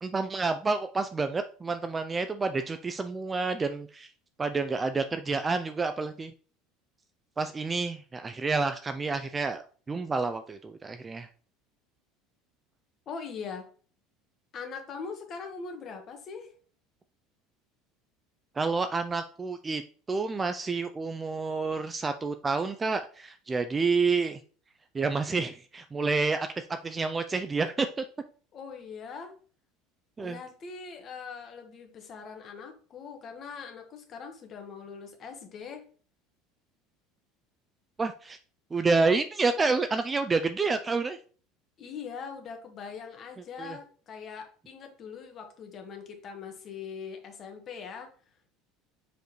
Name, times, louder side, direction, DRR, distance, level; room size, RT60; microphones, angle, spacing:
voice 1, 0.0-4.1 4.4-6.3 7.4-11.3 18.6-19.8 20.1-24.4 24.9-28.0 30.2-30.4 38.0-38.4 38.7-41.2 43.6-43.8, right 4 dB, 15° right, 9 dB, 0.3 m, -29 dB
voice 2, 13.1-13.7 14.5-16.5 28.5-29.3 30.2-35.8 41.8-48.1, left 5 dB, 30° left, 4 dB, 1.3 m, -41 dB
6.8 x 5.0 x 3.0 m, 0.42 s
cardioid pair, 170°, 0 cm